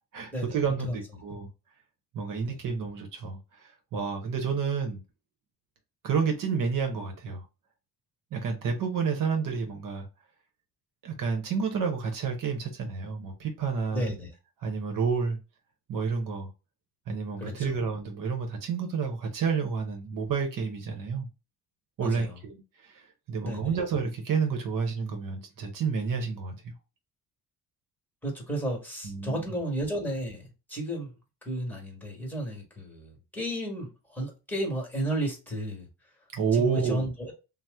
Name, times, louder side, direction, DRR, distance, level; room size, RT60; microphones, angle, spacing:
voice 1, 0.1-1.5 2.1-5.0 6.0-7.4 8.3-10.1 11.0-14.1 14.6-15.4 15.9-16.5 17.1-21.3 22.0-22.6 22.8-26.7 29.0-29.5 36.3-37.1, right 5 dB, 60° right, 0.9 m, -30 dB
voice 2, 13.9-14.3 17.4-17.8 22.0-22.4 23.4-23.8 28.2-31.1 31.4-35.9 36.5-37.3, right 1 dB, 5° left, 1.3 m, -33 dB
2.9 x 2.0 x 3.4 m
cardioid pair, 105°, 36 cm